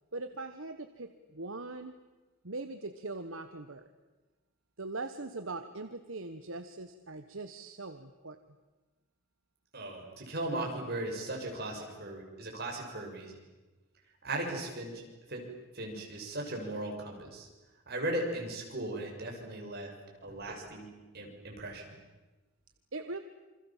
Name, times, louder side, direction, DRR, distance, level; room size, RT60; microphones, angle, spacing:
voice 1, 0.1-1.9 2.4-3.9 4.8-8.4 22.9-23.2, right 3 dB, 70° right, 9 dB, 1.3 m, -41 dB
voice 2, 9.7-13.3 14.2-15.0 15.3-15.4 15.7-17.5 17.9-19.9 20.2-21.8, right 1 dB, 50° right, 1 dB, 6.5 m, -37 dB
28.0 x 25.5 x 7.4 m, 1.2 s
head